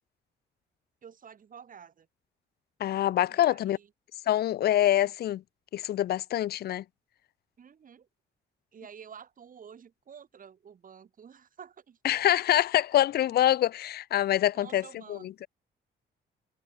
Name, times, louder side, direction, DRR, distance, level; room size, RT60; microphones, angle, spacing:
voice 1, 1.0-2.1 3.3-3.9 7.6-8.1 8.7-12.0 14.5-15.3, right 7 dB, 45° right, 1.2 m, -50 dB
voice 2, 2.8-3.8 4.3-5.4 5.7-6.8 12.0-15.3, left 12 dB, 55° left, 0.4 m, -25 dB
cardioid pair, 90°, 20 cm